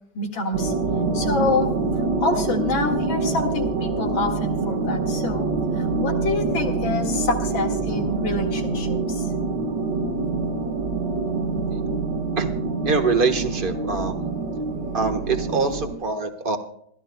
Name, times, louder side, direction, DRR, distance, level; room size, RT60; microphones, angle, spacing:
voice 1, 0.1-0.7 1.1-1.7 2.2-5.5 5.7-9.3, left 3 dB, 90° left, 3 dB, 2.7 m, -27 dB
sound 1, 0.5-15.9, right 3 dB, 65° right, 2.1 m, -25 dB
voice 2, 12.8-14.3 14.9-16.6, right 4 dB, 30° right, 6 dB, 1.2 m, -24 dB
26.5 x 13.0 x 2.3 m, 0.69 s
omnidirectional pair, 2.1 m